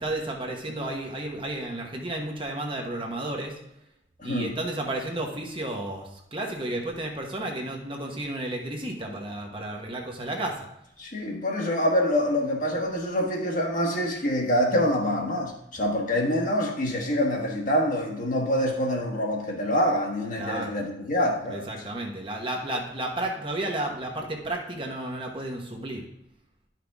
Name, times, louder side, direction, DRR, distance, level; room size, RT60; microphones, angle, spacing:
voice 1, 0.0-3.5 4.2-10.5 20.3-20.8 21.5-26.0, right 1 dB, 25° right, 1 dB, 1.2 m, -32 dB
voice 2, 4.2-4.5 11.0-21.7, equal, 45° left, 0 dB, 1.4 m, -26 dB
11.5 x 5.9 x 3.5 m, 0.82 s
head